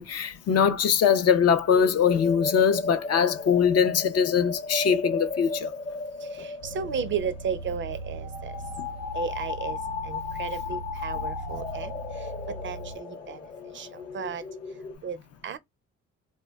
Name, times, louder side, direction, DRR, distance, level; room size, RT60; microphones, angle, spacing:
voice 1, 0.0-5.7 8.8-8.9, left 7 dB, 55° left, 0.5 m, -22 dB
sound 1, 1.7-15.0, left 4 dB, 40° left, 0.9 m, -35 dB
sound 2, 6.6-13.0, right 2 dB, 85° left, 1.0 m, -39 dB
voice 2, 6.6-8.5 9.1-9.8 10.0-11.9 12.6-13.4 13.8-13.9 14.1-14.4 15.0-15.2 15.4-15.6, right 7 dB, 40° right, 0.4 m, -33 dB
2.1 x 2.1 x 3.3 m
cardioid pair, 90°, 30 cm